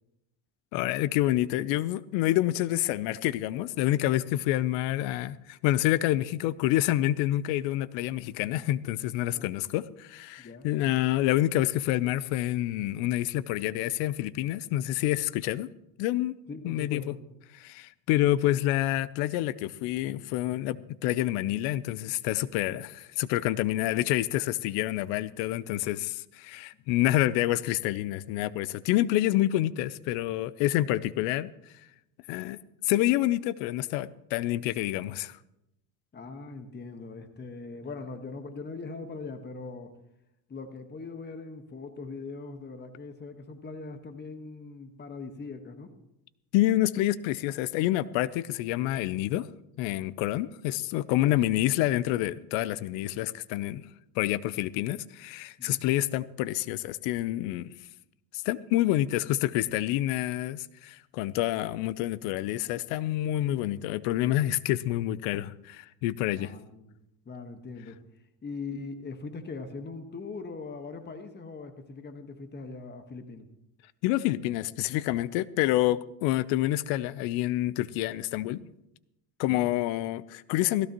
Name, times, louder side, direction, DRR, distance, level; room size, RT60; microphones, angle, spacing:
voice 1, 0.7-15.7 16.0-16.4 16.6-17.1 17.6-31.5 32.3-32.6 32.8-35.4 46.5-49.5 49.8-53.8 54.2-57.7 58.4-66.5 74.0-78.7 79.4-80.9, left 15 dB, 65° left, 18 dB, 0.8 m, -28 dB
voice 2, 10.4-10.7 16.5-17.2 36.1-39.9 40.5-45.9 51.2-51.3 55.6-55.8 66.3-67.0 67.2-68.0 68.4-73.5 79.5-79.7, left 4 dB, 20° left, 7 dB, 1.4 m, -41 dB
17.0 x 16.0 x 3.0 m, 0.84 s
supercardioid pair, 95°, 48 cm